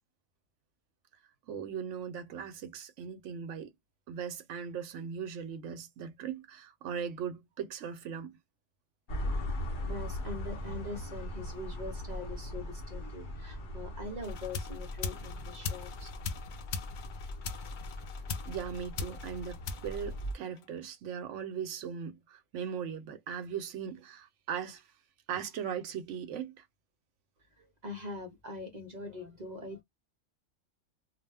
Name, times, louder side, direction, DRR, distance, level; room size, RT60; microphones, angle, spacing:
voice 1, 1.5-3.7 4.1-8.4 18.5-24.9 25.3-26.6, right 7 dB, 75° right, 0.9 m, -39 dB
sound 1, 9.1-20.3, left 1 dB, 45° left, 0.8 m, -39 dB
voice 2, 9.8-16.1 27.6-29.8, left 2 dB, 45° right, 0.6 m, -43 dB
sound 2, 14.2-20.8, left 5 dB, 70° left, 0.4 m, -41 dB
2.3 x 2.1 x 3.3 m
omnidirectional pair, 1.3 m